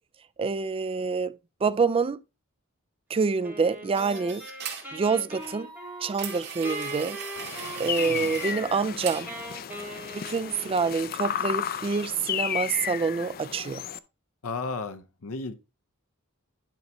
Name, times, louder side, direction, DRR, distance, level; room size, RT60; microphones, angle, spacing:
voice 1, 0.4-1.3 1.6-2.2 3.1-4.4 4.9-5.7 6.0-7.2 7.8-9.3 10.1-13.8, right 5 dB, 25° right, 0.3 m, -27 dB
Wind instrument woodwind instrument, 3.4-11.1, equal, 10° right, 4.0 m, -41 dB
sound 1, 4.0-4.9 5.3-8.6 9.0-9.6, right 7 dB, 50° right, 2.2 m, -39 dB
sound 2, 7.4-14.0, left 9 dB, 45° left, 0.4 m, -33 dB
voice 2, 14.4-15.5, left 4 dB, 70° left, 0.7 m, -34 dB
10.5 x 5.5 x 3.1 m
head